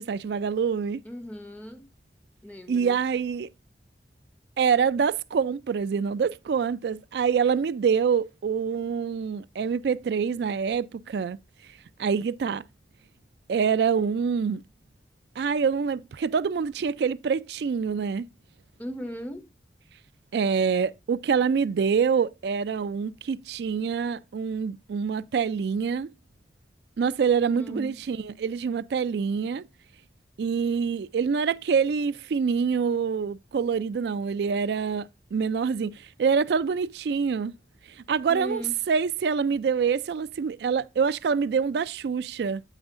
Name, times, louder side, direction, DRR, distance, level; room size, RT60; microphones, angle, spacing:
voice 1, 0.0-1.0 2.7-3.5 4.6-11.4 12.0-12.6 13.5-14.6 15.4-18.3 20.3-26.1 27.0-29.6 30.4-37.5 37.9-42.6, right 6 dB, 75° right, 0.3 m, -26 dB
voice 2, 1.0-1.9 2.4-3.0 18.8-19.5 27.5-28.0 38.3-38.7, equal, 10° left, 0.8 m, -37 dB
9.0 x 7.9 x 2.5 m
head